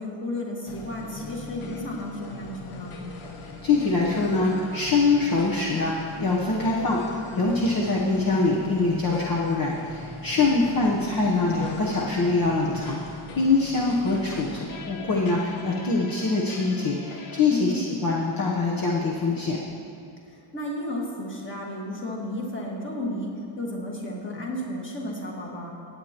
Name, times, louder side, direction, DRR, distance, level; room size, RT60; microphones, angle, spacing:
voice 1, 0.0-3.0 10.6-10.8 17.5-17.8 20.3-25.7, left 1 dB, 25° left, -2 dB, 1.5 m, -33 dB
sound 1, 0.7-17.4, left 4 dB, 85° left, 1.2 m, -41 dB
voice 2, 3.6-19.6, left 3 dB, 45° left, -4 dB, 0.9 m, -24 dB
17.0 x 8.6 x 2.9 m, 2.7 s
wide cardioid pair, 175°, 48 cm